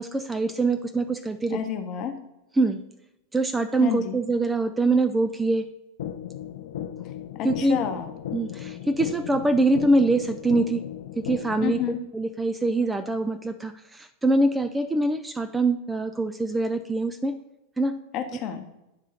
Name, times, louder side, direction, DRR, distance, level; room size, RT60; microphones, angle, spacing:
voice 1, 0.0-1.6 2.6-2.8 3.3-5.7 7.4-7.8 8.3-10.8 11.2-11.8 12.1-17.4 17.8-18.0, right 2 dB, 10° right, 9 dB, 0.3 m, -24 dB
voice 2, 1.5-2.1 3.8-4.2 7.4-8.1 11.6-12.0 18.1-18.6, left 8 dB, 35° left, 6 dB, 0.8 m, -29 dB
sound 1, 6.0-12.0, left 10 dB, 60° left, 0.4 m, -36 dB
8.8 x 3.6 x 4.2 m, 0.94 s
figure-of-eight pair, 90°, 0 cm